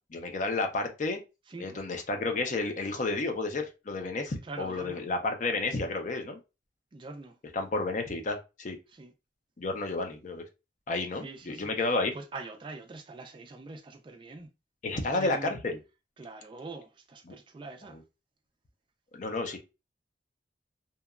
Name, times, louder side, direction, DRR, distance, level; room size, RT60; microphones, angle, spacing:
voice 1, 0.1-1.2 1.6-6.4 7.5-8.8 9.6-10.4 10.9-12.1 14.8-15.8 17.3-17.4 17.9-18.0 19.1-19.6, left 3 dB, 45° left, 0.5 m, -31 dB
voice 2, 1.5-1.8 4.4-5.1 6.9-7.4 8.9-9.1 11.2-11.7 12.1-14.5 14.9-15.5 16.2-18.0, right 3 dB, 25° right, 0.3 m, -43 dB
2.8 x 2.2 x 2.3 m
head